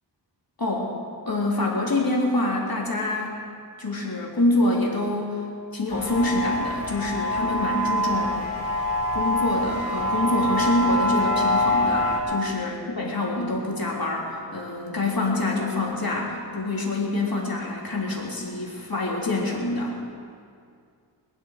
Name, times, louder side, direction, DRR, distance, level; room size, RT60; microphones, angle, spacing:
voice 1, 0.6-0.9 1.2-3.4 3.8-5.4 5.7-8.4 9.1-20.0, left 2 dB, 50° left, -3 dB, 3.2 m, -26 dB
sound 1, 5.9-12.2, left 1 dB, 85° left, 2.6 m, -25 dB
20.5 x 12.0 x 5.0 m, 2.3 s
wide cardioid pair, 70°, 45 cm